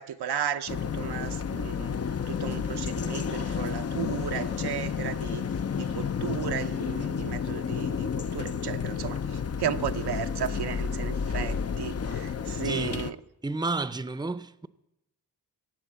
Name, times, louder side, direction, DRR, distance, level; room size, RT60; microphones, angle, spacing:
voice 1, 0.0-2.0 2.3-5.4 5.8-13.2, right 9 dB, 85° right, 0.7 m, -34 dB
sound 1, 0.7-13.1, left 6 dB, 40° left, 0.6 m, -31 dB
voice 2, 12.6-13.0 13.4-14.7, right 3 dB, 10° right, 0.6 m, -31 dB
16.5 x 7.7 x 7.5 m
cardioid pair, 50°, 38 cm